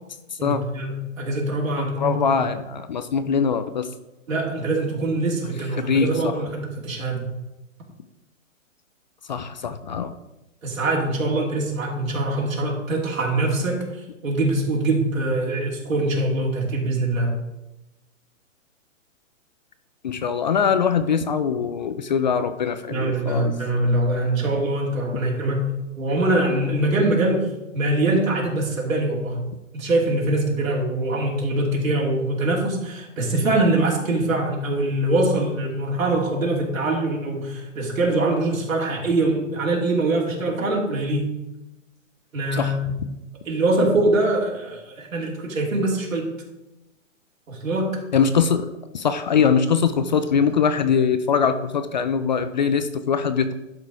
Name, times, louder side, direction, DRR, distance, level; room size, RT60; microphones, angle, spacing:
voice 1, 0.4-2.4 4.3-7.3 10.6-13.8 14.2-17.4 22.9-25.7 26.0-27.5 27.7-29.4 29.7-41.4 42.3-43.0 43.4-46.3 47.5-48.0, right 2 dB, 85° right, -2 dB, 2.9 m, -23 dB
voice 2, 1.8-3.9 5.8-6.3 9.3-10.1 20.0-23.5 42.5-42.8 48.1-53.5, left 6 dB, 35° left, 10 dB, 0.4 m, -22 dB
11.5 x 4.7 x 4.8 m, 0.97 s
hypercardioid pair, 150°, 40 cm